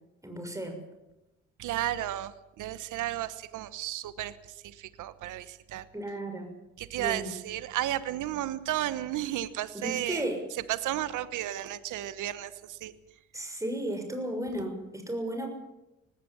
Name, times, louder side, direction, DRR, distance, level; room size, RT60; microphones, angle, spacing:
voice 1, 0.2-0.8 5.9-6.5 7.0-7.3 9.7-10.4 13.3-15.5, right 1 dB, 10° right, 5 dB, 6.5 m, -34 dB
voice 2, 1.6-4.4 4.6-5.8 6.8-10.2 10.7-12.9, right 13 dB, 85° right, 14 dB, 1.2 m, -33 dB
19.0 x 17.0 x 8.8 m, 0.97 s
cardioid pair, 90°, 30 cm